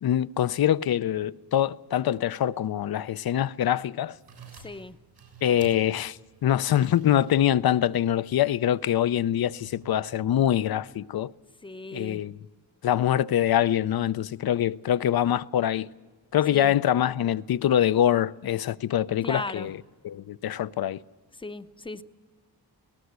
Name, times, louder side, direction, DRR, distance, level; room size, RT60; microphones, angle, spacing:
voice 1, 0.0-4.1 5.4-11.3 11.9-12.3 12.8-15.9 16.3-19.8 20.0-21.0, left 11 dB, 65° left, 0.5 m, -24 dB
sound 1, 4.1-10.9, right 4 dB, 80° right, 7.0 m, -51 dB
voice 2, 4.5-5.0 11.6-12.2 16.5-16.7 19.2-19.7 21.4-22.0, left 2 dB, 15° left, 0.6 m, -36 dB
19.5 x 18.5 x 8.1 m
wide cardioid pair, 90°, 40 cm